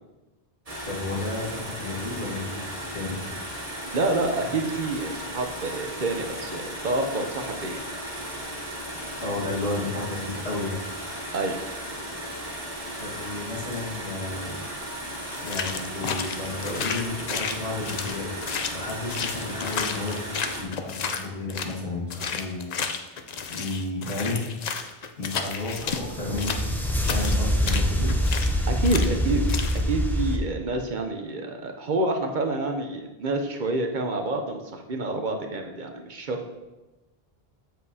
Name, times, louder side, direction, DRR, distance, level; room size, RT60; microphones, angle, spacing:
sound 1, 0.7-20.6, equal, 35° right, 1.2 m, -36 dB
voice 1, 0.8-3.4 9.2-10.8 13.0-14.6 15.4-18.4 18.7-22.7 23.5-24.4 25.2-28.1, left 2 dB, 80° left, -4 dB, 2.0 m, -32 dB
voice 2, 3.9-7.8 11.3-11.6 28.7-29.4 29.9-36.5, right 2 dB, 55° right, 4 dB, 0.8 m, -28 dB
sound 2, 15.3-21.8 22.1-26.0 26.4-28.6 28.8-29.1 29.5-29.8, left 6 dB, 50° left, 0.5 m, -32 dB
sound 3, 25.8-30.4, equal, 5° left, 0.3 m, -25 dB
7.4 x 7.3 x 2.7 m, 1.1 s
omnidirectional pair, 1.0 m